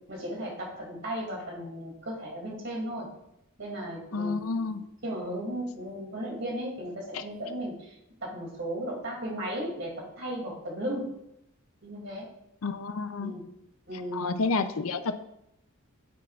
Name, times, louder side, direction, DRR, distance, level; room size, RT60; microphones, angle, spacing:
voice 1, 0.1-3.1 3.6-8.0 8.2-11.1 11.8-12.3 13.2-13.4 13.9-14.4, equal, 55° right, -1 dB, 2.7 m, -35 dB
voice 2, 4.1-4.8 12.6-13.3 14.1-15.2, left 4 dB, 75° left, 10 dB, 0.6 m, -30 dB
10.0 x 7.3 x 2.5 m, 0.80 s
head